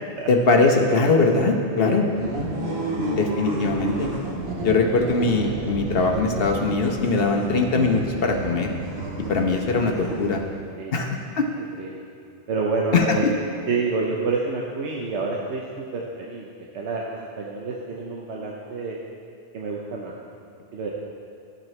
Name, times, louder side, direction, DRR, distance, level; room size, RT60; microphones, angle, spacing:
voice 1, 0.3-2.1 3.1-4.1 4.6-8.7 9.2-10.4 10.9-11.5 12.9-13.3, left 3 dB, 60° left, 3 dB, 1.1 m, -21 dB
sound 1, 2.1-10.7, right 1 dB, 65° right, 1.5 m, -30 dB
voice 2, 12.5-13.3 13.7-15.6 15.9-16.4 16.7-17.0 17.4-19.0 19.5-20.1 20.7-20.9, right 4 dB, 85° right, -2 dB, 1.1 m, -28 dB
13.0 x 7.5 x 3.2 m, 2.4 s
omnidirectional pair, 1.1 m